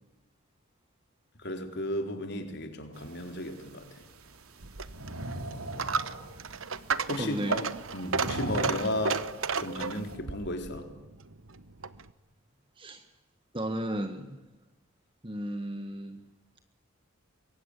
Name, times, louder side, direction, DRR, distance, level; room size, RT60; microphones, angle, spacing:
voice 1, 1.4-4.0 7.1-9.2 9.6-10.9, left 1 dB, 50° left, 3.9 m, -34 dB
sound 1, 2.9-10.2, right 1 dB, 85° right, 3.3 m, -42 dB
Coin (dropping), 4.6-12.1, right 5 dB, 65° right, 1.1 m, -33 dB
voice 2, 7.2-7.6 12.8-13.0 13.5-14.4 15.2-16.2, right 1 dB, 25° right, 1.5 m, -34 dB
25.0 x 23.0 x 9.9 m
head